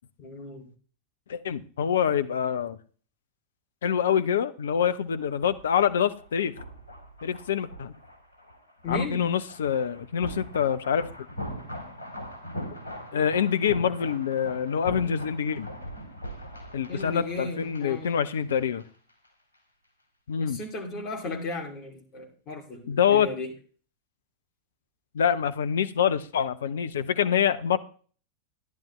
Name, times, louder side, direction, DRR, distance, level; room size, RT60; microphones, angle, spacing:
voice 1, 0.2-0.7 8.8-9.3 16.9-18.2 20.4-23.5, left 2 dB, 35° left, 2.5 m, -35 dB
voice 2, 1.3-2.8 3.8-6.5 7.2-7.9 8.9-11.1 13.1-15.7 16.7-18.8 20.3-20.6 22.9-23.3 25.1-27.8, left 8 dB, 65° left, 0.7 m, -25 dB
sound 1, 5.0-18.8 19.1-19.3, equal, 85° right, 3.2 m, -41 dB
14.0 x 10.5 x 3.2 m
figure-of-eight pair, 90°, 0 cm